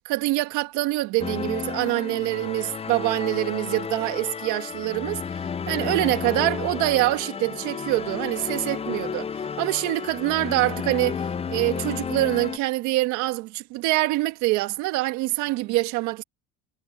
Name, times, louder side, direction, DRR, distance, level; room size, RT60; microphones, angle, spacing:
voice 1, 0.1-5.4 5.7-16.2, right 19 dB, 75° right, 1.6 m, -25 dB
sound 1, 1.2-12.6, left 6 dB, 20° left, 0.6 m, -32 dB
cardioid pair, 110°, 29 cm